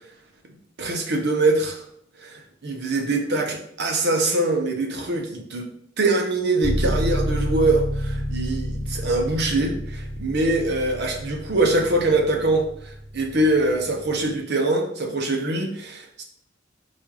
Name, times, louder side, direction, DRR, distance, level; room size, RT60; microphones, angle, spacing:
voice 1, 0.8-1.8 2.2-5.7 6.0-16.2, right 2 dB, 60° right, 3 dB, 0.8 m, -23 dB
sound 1, 6.6-14.4, equal, 5° left, 0.6 m, -29 dB
4.3 x 2.4 x 4.7 m, 0.67 s
head